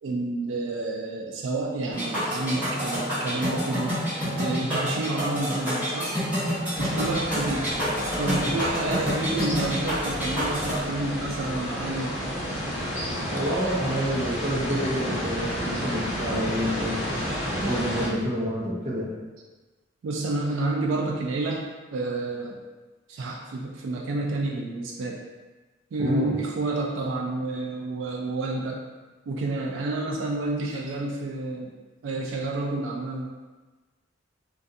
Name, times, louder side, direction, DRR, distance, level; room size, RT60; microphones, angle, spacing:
voice 1, 0.0-4.0 4.4-6.1 6.8-7.7 8.2-12.2 20.0-22.6 23.1-25.2 25.9-28.8 29.3-31.7 32.0-33.3, right 2 dB, 85° right, 0 dB, 0.3 m, -29 dB
sound 1, 1.9-10.8, equal, 10° right, 1.0 m, -28 dB
sound 2, 6.7-18.1, equal, 40° left, 0.9 m, -31 dB
voice 2, 7.5-7.9 8.2-8.5 8.8-9.2 13.3-17.0 17.6-19.1 26.0-26.4, equal, 35° right, -5 dB, 0.6 m, -28 dB
2.4 x 2.3 x 2.6 m, 1.2 s
head